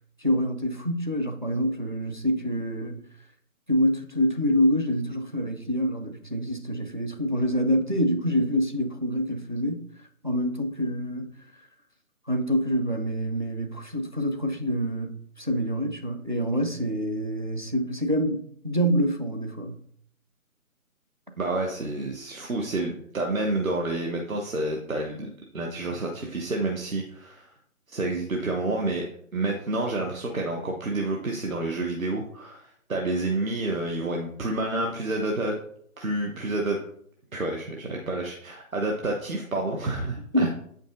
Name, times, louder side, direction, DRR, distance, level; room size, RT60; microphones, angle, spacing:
voice 1, 0.2-3.0 3.7-9.9 10.2-11.3 12.3-19.8 40.3-40.5, equal, 35° right, 0.4 m, -26 dB
voice 2, 21.4-25.3 25.5-27.5 27.9-29.0 29.3-35.5 36.0-36.8 37.3-40.5, right 2 dB, 70° right, 1.1 m, -29 dB
8.3 x 5.2 x 2.6 m
figure-of-eight pair, 150°, 43 cm